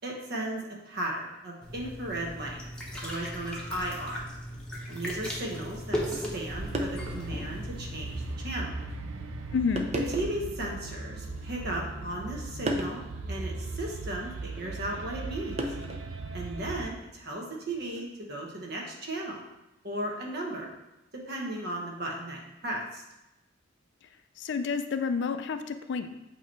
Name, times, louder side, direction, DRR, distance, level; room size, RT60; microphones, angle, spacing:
voice 1, 0.0-2.6 2.9-4.2 4.9-8.7 9.9-13.0 13.3-15.6 16.3-19.4 19.8-20.7 21.1-23.0, right 1 dB, 55° right, -1 dB, 1.2 m, -36 dB
sound 1, 1.6-8.3, equal, 5° left, 0.9 m, -37 dB
sound 2, 5.0-5.2 6.3-6.4 6.7-7.2 7.8-7.9 8.8-9.0 9.8-10.5 11.3-12.0 12.7-13.0 14.5-14.7 15.6-16.2 17.7-18.0, right 1 dB, 35° right, 0.6 m, -34 dB
sound 3, 6.5-16.9, right 3 dB, 80° right, 0.5 m, -38 dB
voice 2, 9.5-9.9 24.4-26.1, left 5 dB, 60° left, 9 dB, 0.4 m, -29 dB
8.0 x 3.0 x 4.5 m, 0.93 s
head